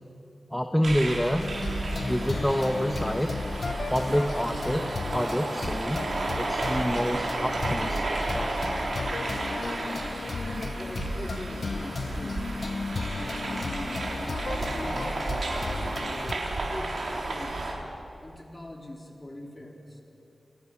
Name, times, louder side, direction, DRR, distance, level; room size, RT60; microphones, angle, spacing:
voice 1, 0.5-1.4 2.0-3.3 3.9-4.8 5.1-6.0 6.4-8.0 8.3-8.6, equal, 5° left, 4 dB, 1.1 m, -27 dB
sound 1, 0.8-17.7, right 2 dB, 75° right, 3.9 m, -32 dB
sound 2, 1.4-16.3, left 4 dB, 65° left, 0.7 m, -35 dB
voice 2, 10.3-12.5 13.1-15.1 15.7-17.8 18.2-20.0, left 1 dB, 20° left, 1 dB, 3.6 m, -42 dB
29.0 x 25.0 x 6.1 m, 2.8 s
wide cardioid pair, 110°, 0 cm